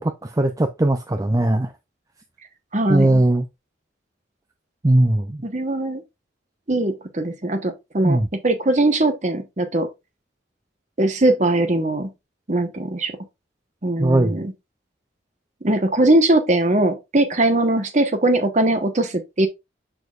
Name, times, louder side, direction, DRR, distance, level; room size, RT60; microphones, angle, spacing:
voice 1, 0.0-1.7 2.9-3.4 4.8-5.4 8.0-8.3 14.0-14.4, right 1 dB, 15° right, 0.4 m, -19 dB
voice 2, 2.7-3.2 5.4-6.0 6.7-9.9 11.0-12.1 12.5-13.1 13.8-14.5 15.6-19.5, right 2 dB, 35° right, 1.1 m, -20 dB
6.9 x 6.3 x 2.4 m
head